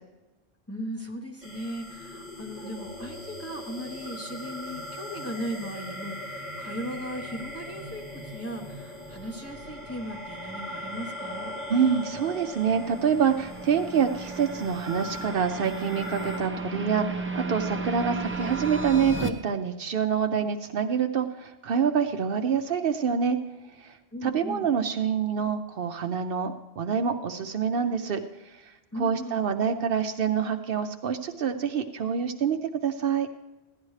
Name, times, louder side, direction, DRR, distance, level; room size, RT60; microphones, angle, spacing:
voice 1, 0.7-11.5 24.1-24.7 28.9-29.5, equal, 15° left, -1 dB, 0.9 m, -37 dB
sound 1, 1.4-16.4, left 1 dB, 65° left, 3.9 m, -40 dB
sound 2, 7.8-19.3, right 3 dB, 15° right, 0.6 m, -36 dB
voice 2, 11.7-23.4 23.8-33.3, right 7 dB, 65° right, 6 dB, 0.8 m, -26 dB
15.5 x 11.0 x 3.2 m, 1.1 s
omnidirectional pair, 1.1 m